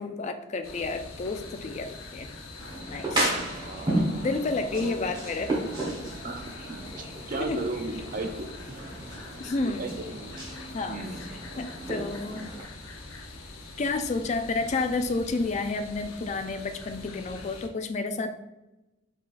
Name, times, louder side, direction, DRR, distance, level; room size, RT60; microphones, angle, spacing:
voice 1, 0.0-2.3 2.9-3.4 4.2-5.5 7.4-7.6 9.4-9.9 10.7-11.0 11.3-12.5 13.8-18.3, left 3 dB, 35° left, 7 dB, 0.3 m, -30 dB
sound 1, 0.6-17.7, left 3 dB, 85° left, 0.7 m, -44 dB
sound 2, 2.6-12.6, right 1 dB, 20° right, 1.2 m, -33 dB
voice 2, 4.7-5.0 6.2-8.8 9.8-10.4 10.8-11.2, right 2 dB, 40° right, 5 dB, 0.5 m, -36 dB
5.1 x 3.8 x 2.5 m, 0.99 s
head